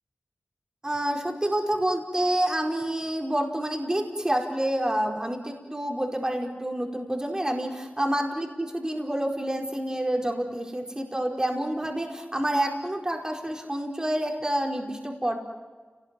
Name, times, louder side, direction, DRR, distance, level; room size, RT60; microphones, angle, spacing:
voice 1, 0.8-15.4, right 1 dB, 20° right, 2 dB, 4.8 m, -28 dB
29.5 x 19.5 x 9.8 m, 1.4 s
wide cardioid pair, 65°, 3 cm